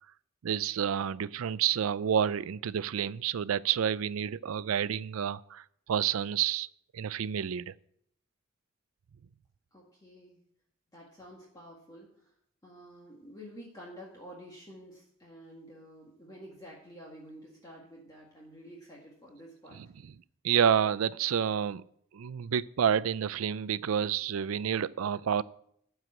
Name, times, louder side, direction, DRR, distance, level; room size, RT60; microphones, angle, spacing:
voice 1, 0.4-6.7 6.9-7.7 19.7-20.2 20.4-21.8 22.1-25.4, right 8 dB, 80° right, 0.4 m, -29 dB
voice 2, 9.7-10.4 10.9-12.3 12.6-19.8, equal, 20° left, 1.8 m, -50 dB
12.5 x 4.8 x 7.6 m
head